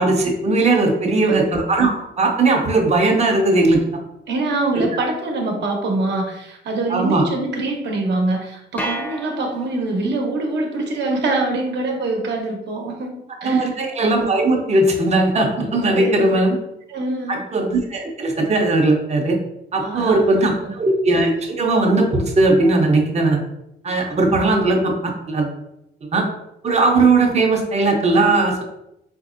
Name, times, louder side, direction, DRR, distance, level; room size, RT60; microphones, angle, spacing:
voice 1, 0.0-1.9 2.2-4.0 4.8-4.9 6.9-7.2 13.4-16.6 17.3-19.4 19.7-23.4 23.8-25.5 26.0-26.3 26.6-28.6, right 2 dB, 35° right, 2 dB, 0.7 m, -18 dB
voice 2, 1.0-1.5 4.3-13.7 15.9-16.4 16.9-17.3 19.8-20.7, right 2 dB, 65° right, 1 dB, 0.9 m, -24 dB
sound 1, 8.8-10.1, equal, 10° left, 0.6 m, -31 dB
4.0 x 2.6 x 2.5 m, 0.82 s
cardioid pair, 90°, 20 cm